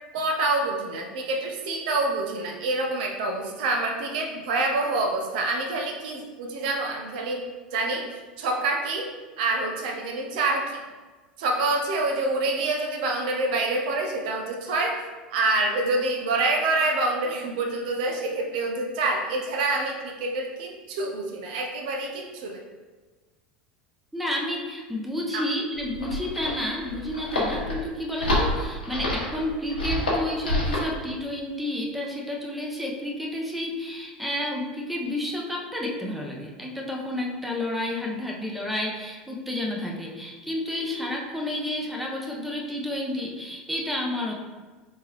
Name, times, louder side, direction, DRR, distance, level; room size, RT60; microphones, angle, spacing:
voice 1, 0.1-7.4 7.7-8.1 8.4-9.1 9.4-10.8 11.4-15.0 15.3-22.6 25.3-25.4, right 2 dB, 65° right, 2 dB, 0.7 m, -26 dB
voice 2, 24.1-44.3, left 1 dB, ahead, -1 dB, 0.8 m, -30 dB
sound 1, 25.7-30.9, left 1 dB, 85° left, 1.1 m, -27 dB
4.3 x 3.7 x 3.0 m, 1.3 s
hypercardioid pair, 80°, 5 cm